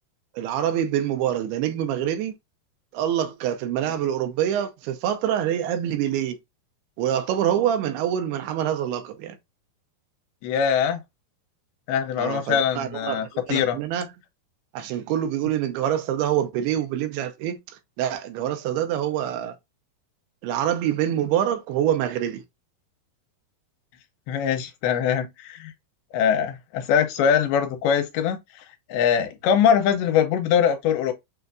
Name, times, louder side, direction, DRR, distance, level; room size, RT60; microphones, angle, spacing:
voice 1, 0.3-2.3 2.9-6.4 7.0-9.4 12.2-14.1 14.7-19.6 20.4-22.4, right 10 dB, 80° right, 2.6 m, -25 dB
voice 2, 10.4-11.0 11.9-13.8 24.3-25.7 26.1-28.4 28.9-31.1, left 8 dB, 80° left, 2.6 m, -22 dB
6.5 x 2.5 x 2.3 m
omnidirectional pair, 4.6 m